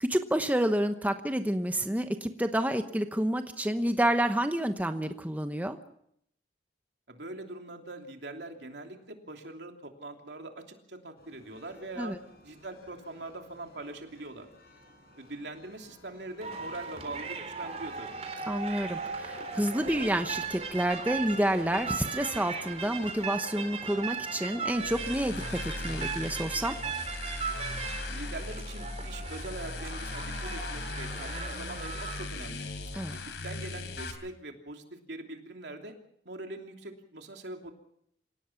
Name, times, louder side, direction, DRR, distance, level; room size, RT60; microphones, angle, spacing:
voice 1, 0.0-5.8 12.0-12.2 18.5-26.8 32.9-33.2, right 1 dB, 10° right, 7 dB, 0.9 m, -29 dB
voice 2, 7.1-14.5 15.2-18.2 28.1-32.7 33.2-36.0 36.2-37.7, right 2 dB, 80° right, 3 dB, 3.0 m, -43 dB
sound 1, 11.2-25.1, left 2 dB, 60° left, 7.6 m, -55 dB
sound 2, 16.4-32.3, right 5 dB, 35° right, 3.6 m, -38 dB
sound 3, 24.7-34.1, left 2 dB, 90° left, 3.4 m, -38 dB
27.0 x 17.5 x 5.9 m, 0.71 s
head